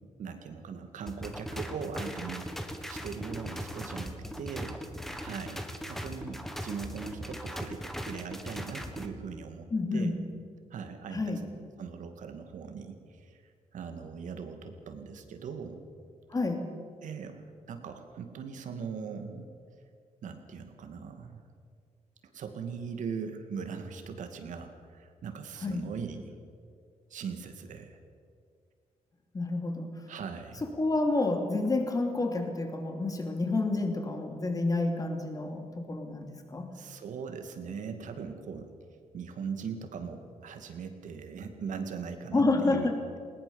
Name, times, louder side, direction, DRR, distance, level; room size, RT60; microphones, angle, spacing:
voice 1, 0.2-4.8 5.2-10.2 10.7-11.4 11.8-13.4 13.7-15.8 17.0-19.5 20.2-21.4 22.2-26.3 27.1-28.0 30.1-30.6 36.7-38.7 39.1-43.0, right 6 dB, 75° right, 6 dB, 2.2 m, -40 dB
sound 1, 1.1-9.1, equal, ahead, 1.6 m, -39 dB
voice 2, 9.7-10.2 11.1-11.4 16.3-16.7 25.6-25.8 29.3-29.9 30.8-36.7 42.3-43.0, left 2 dB, 25° left, 4 dB, 2.8 m, -29 dB
20.0 x 19.0 x 7.1 m, 2.2 s
cardioid pair, 135°, 13 cm